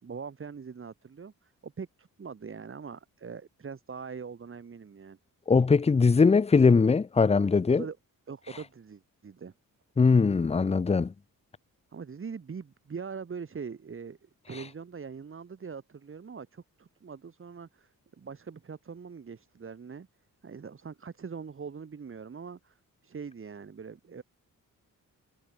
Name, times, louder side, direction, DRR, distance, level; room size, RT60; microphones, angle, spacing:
voice 1, 0.0-5.2 7.7-8.0 8.3-9.5 11.9-17.9 18.2-20.1 20.4-24.2, right 6 dB, 35° right, 3.3 m, -42 dB
voice 2, 5.5-7.8 10.0-11.1, left 4 dB, 20° left, 0.6 m, -21 dB
wide cardioid pair, 170°, 34 cm